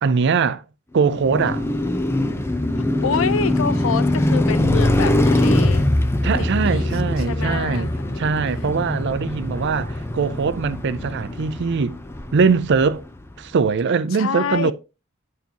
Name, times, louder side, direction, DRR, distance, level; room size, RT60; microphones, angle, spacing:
voice 1, 0.0-0.6 0.9-1.7 6.2-12.0 12.3-13.0 13.4-14.7, right 5 dB, 55° right, 0.4 m, -21 dB
Car passing by, 1.0-13.2, left 1 dB, 10° left, 0.5 m, -22 dB
voice 2, 3.0-5.8 6.6-6.9 7.2-8.3 14.2-14.7, left 6 dB, 70° left, 0.6 m, -26 dB
9.2 x 4.7 x 2.9 m
head